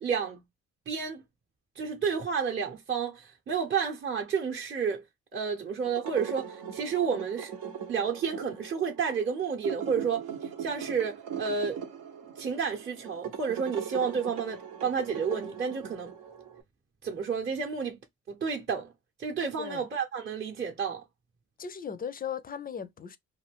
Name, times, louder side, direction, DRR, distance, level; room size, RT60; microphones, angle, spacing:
voice 1, 0.0-0.4 0.9-1.2 1.8-5.0 5.3-7.5 7.9-11.8 12.4-16.1 17.0-18.0 18.3-18.9 19.2-21.0, right 6 dB, 35° right, 0.7 m, -31 dB
sound 1, 5.8-16.6, right 8 dB, 85° right, 0.8 m, -40 dB
voice 2, 21.6-23.2, left 7 dB, 30° left, 0.4 m, -37 dB
2.5 x 2.3 x 3.4 m
cardioid pair, 90°, 30 cm